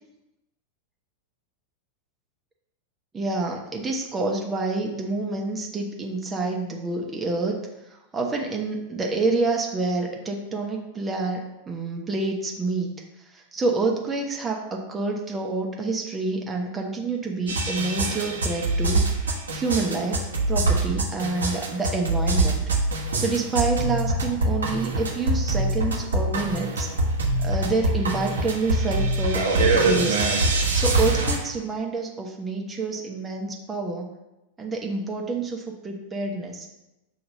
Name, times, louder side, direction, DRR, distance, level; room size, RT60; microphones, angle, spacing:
voice 1, 3.1-7.6 7.9-13.0 13.3-19.1 19.5-22.6 22.9-26.9 27.4-30.3 30.7-34.1 34.6-36.7, right 3 dB, 15° right, 0 dB, 0.9 m, -28 dB
sound 1, 17.5-31.4, right 2 dB, 70° right, 1.0 m, -24 dB
6.8 x 2.9 x 5.3 m, 0.94 s
figure-of-eight pair, 90°, 0 cm